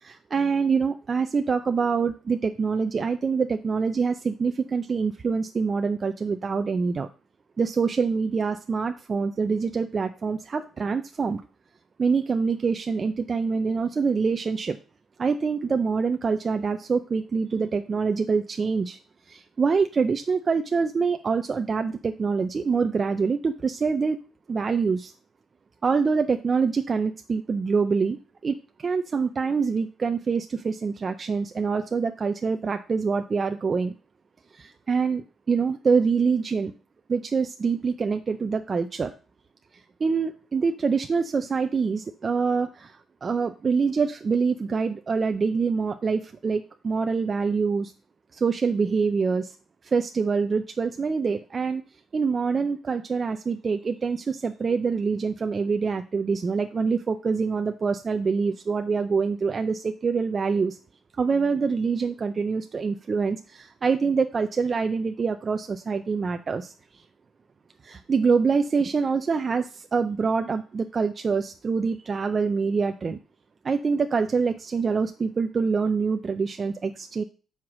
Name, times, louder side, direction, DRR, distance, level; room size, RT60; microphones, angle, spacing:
voice 1, 0.0-7.1 7.6-11.4 12.0-14.8 15.2-19.0 19.3-24.2 24.5-25.1 25.8-28.2 28.4-33.9 34.5-36.7 37.1-39.1 40.0-47.9 48.3-49.5 49.8-51.8 52.1-60.8 61.2-66.7 67.8-73.2 73.6-77.2, right 5 dB, 40° right, 7 dB, 0.6 m, -25 dB
5.7 x 4.8 x 6.1 m, 0.35 s
cardioid pair, 90°, 0 cm